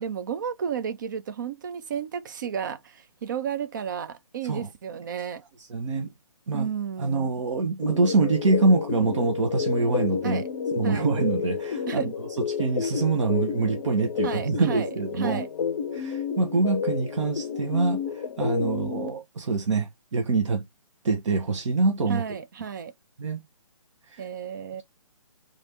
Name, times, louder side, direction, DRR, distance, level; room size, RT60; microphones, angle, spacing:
voice 1, 0.0-5.4 6.5-7.3 10.2-10.5 10.8-11.1 11.9-12.1 14.2-15.5 22.1-22.9 24.2-24.8, right 8 dB, 35° right, 0.4 m, -32 dB
voice 2, 5.7-6.1 6.5-6.7 7.0-10.4 10.7-15.4 15.9-20.7 21.0-22.2 23.2-23.4 24.1-24.2, right 3 dB, 55° right, 0.9 m, -25 dB
sound 1, 7.8-19.1, left 7 dB, 40° left, 0.6 m, -30 dB
3.3 x 2.5 x 4.2 m
hypercardioid pair, 150°, 19 cm